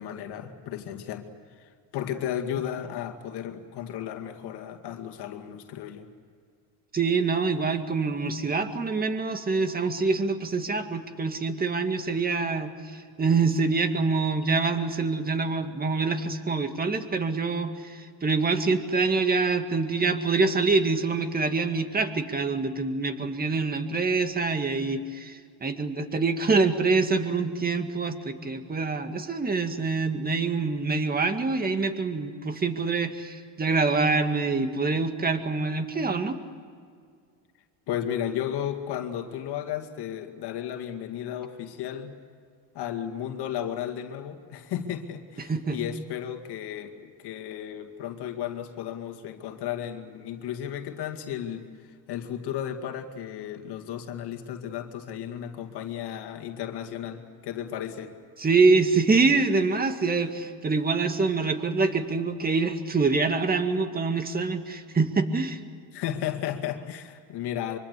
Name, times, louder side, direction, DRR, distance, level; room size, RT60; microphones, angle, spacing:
voice 1, 0.0-6.1 37.9-42.2 42.7-58.1 65.9-67.8, left 10 dB, 60° left, 5 dB, 2.3 m, -34 dB
voice 2, 6.9-36.4 45.4-45.8 58.4-65.6, right 4 dB, 20° right, 7 dB, 2.1 m, -25 dB
24.5 x 24.5 x 8.3 m, 2.1 s
cardioid pair, 120°, 46 cm